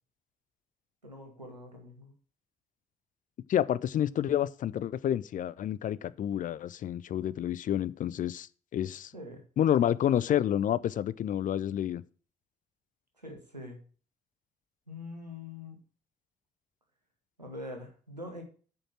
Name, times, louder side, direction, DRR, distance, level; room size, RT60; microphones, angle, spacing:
voice 1, 1.0-2.1 9.1-9.4 13.2-13.8 14.9-15.8 17.4-18.4, left 1 dB, 90° right, 1.4 m, -44 dB
voice 2, 3.5-8.5 8.7-9.1 9.6-12.0, left 10 dB, 40° left, 0.5 m, -29 dB
8.6 x 5.2 x 5.9 m
figure-of-eight pair, 45°, 21 cm